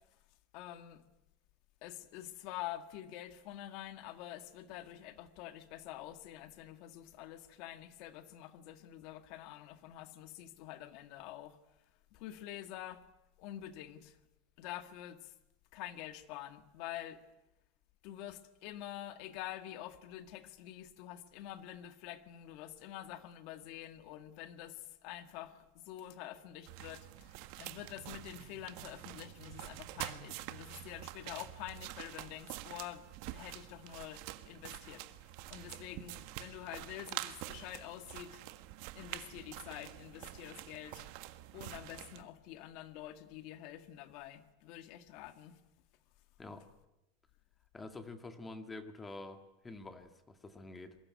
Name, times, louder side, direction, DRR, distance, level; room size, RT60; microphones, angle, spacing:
voice 1, 0.5-1.0 1.8-11.6 12.1-13.0 13.4-14.2 14.6-15.3 15.7-17.2 18.0-33.0 33.3-35.1 35.5-38.4 38.9-41.1 41.5-45.6, left 13 dB, 45° left, 1.8 m, -47 dB
sound 1, 26.7-42.2, right 16 dB, 50° right, 1.5 m, -47 dB
voice 2, 47.7-51.0, left 2 dB, 10° left, 1.9 m, -47 dB
27.5 x 22.5 x 9.6 m
supercardioid pair, 175°, 0 cm